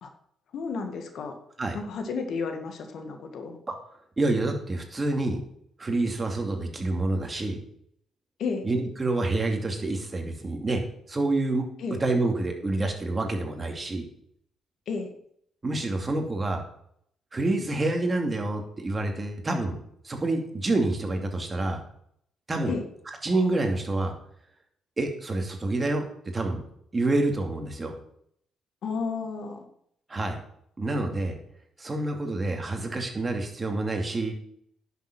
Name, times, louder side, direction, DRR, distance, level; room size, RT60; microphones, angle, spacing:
voice 1, 0.5-1.4 1.7-3.6 8.4-8.7 11.8-12.0 14.9-15.1 22.7-22.9 28.8-29.7, left 5 dB, 70° left, 6 dB, 1.9 m, -32 dB
voice 2, 4.2-5.4 5.8-7.6 8.6-10.8 11.1-14.1 15.6-16.6 17.3-19.8 20.0-21.8 22.5-22.7 23.2-24.1 25.0-26.0 26.3-26.6 26.9-28.0 30.1-30.4 30.8-31.4 31.8-34.3, right 2 dB, 25° right, 3 dB, 2.5 m, -27 dB
10.5 x 7.0 x 6.0 m, 0.69 s
cardioid pair, 90°, 0 cm